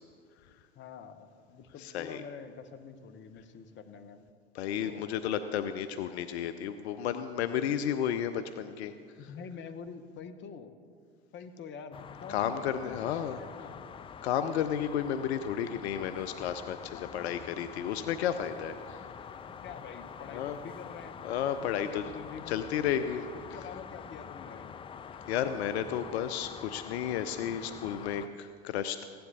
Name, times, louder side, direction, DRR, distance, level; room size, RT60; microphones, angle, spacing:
voice 1, 0.7-4.2 4.8-5.2 9.2-10.7 11.3-13.8 16.9-17.3 19.6-21.2 21.8-24.7, left 6 dB, 35° left, 9 dB, 1.0 m, -46 dB
voice 2, 1.8-2.2 4.5-8.9 12.3-13.4 14.2-19.0 20.3-20.6 21.2-22.0 22.5-23.2 25.3-29.1, left 9 dB, 70° left, 10 dB, 0.6 m, -32 dB
sound 1, 11.9-28.3, left 7 dB, 15° left, 0.4 m, -46 dB
16.0 x 10.0 x 4.0 m, 2.3 s
hypercardioid pair, 80°, 34 cm